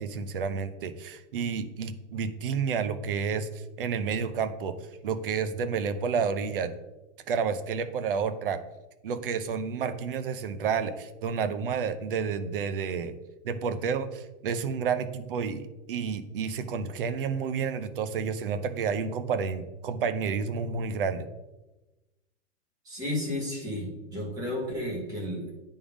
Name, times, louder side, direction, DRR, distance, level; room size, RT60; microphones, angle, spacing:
voice 1, 0.0-4.8 5.0-6.7 7.3-8.6 9.0-13.1 13.4-21.3, right 6 dB, 45° right, 10 dB, 0.6 m, -30 dB
voice 2, 22.8-25.5, left 1 dB, 10° right, -3 dB, 1.1 m, -32 dB
8.8 x 3.6 x 4.9 m, 1.0 s
supercardioid pair, 180°, 37 cm